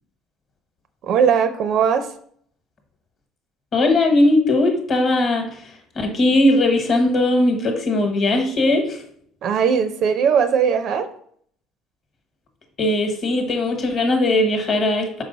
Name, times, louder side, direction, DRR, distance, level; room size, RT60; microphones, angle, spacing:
voice 1, 1.0-2.1 9.4-11.1, right 7 dB, 45° right, 9 dB, 0.4 m, -19 dB
voice 2, 3.7-5.4 5.9-9.0 12.8-15.2, left 1 dB, 35° left, 5 dB, 1.1 m, -19 dB
5.6 x 4.7 x 3.9 m, 0.62 s
cardioid pair, 175°, 0 cm